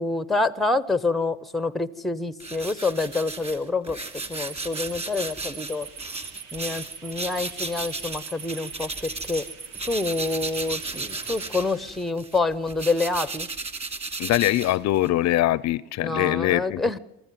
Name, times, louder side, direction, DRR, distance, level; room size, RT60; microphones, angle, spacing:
voice 1, 0.0-4.0 4.3-5.9 6.5-9.4 9.8-13.5 16.0-17.0, left 3 dB, ahead, 0.9 m, -27 dB
sound 1, 2.4-9.5 9.7-15.2, right 3 dB, 20° right, 2.9 m, -35 dB
sound 2, 4.1-12.2, right 6 dB, 35° right, 1.1 m, -42 dB
sound 3, 5.7-11.9, right 4 dB, 90° right, 4.8 m, -51 dB
voice 2, 14.2-16.8, left 15 dB, 50° left, 0.7 m, -23 dB
24.0 x 14.0 x 9.2 m
supercardioid pair, 110°, 34 cm